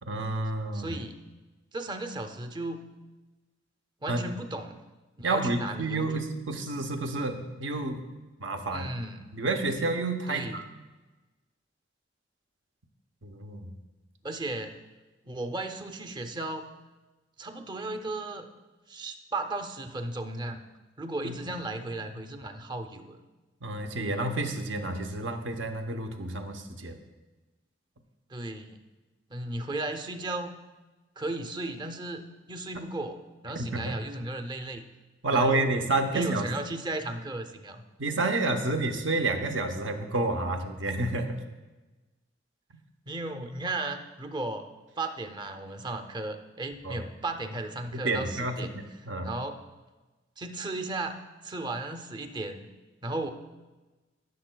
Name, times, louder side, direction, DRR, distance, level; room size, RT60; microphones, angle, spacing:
voice 1, 0.0-0.9 4.1-4.3 5.2-8.0 8.4-8.9 9.3-10.6 13.2-13.7 21.2-21.3 23.6-27.0 32.7-32.8 33.5-33.9 35.2-36.5 38.0-41.4 46.8-47.0 47.9-49.3, right 2 dB, 80° right, 6 dB, 0.8 m, -29 dB
voice 2, 0.7-1.2 1.7-2.8 4.0-4.8 5.2-6.3 8.7-9.3 10.3-10.6 14.2-14.7 15.2-16.7 17.4-18.5 18.9-20.6 21.0-23.2 28.3-28.8 29.3-30.6 31.2-33.2 33.4-34.8 35.3-35.7 36.1-37.8 43.1-44.6 45.0-48.7 49.2-49.5 50.4-51.2 51.4-52.7 53.0-53.3, right 2 dB, 25° right, 7 dB, 0.5 m, -35 dB
14.5 x 6.5 x 2.2 m, 1.2 s
head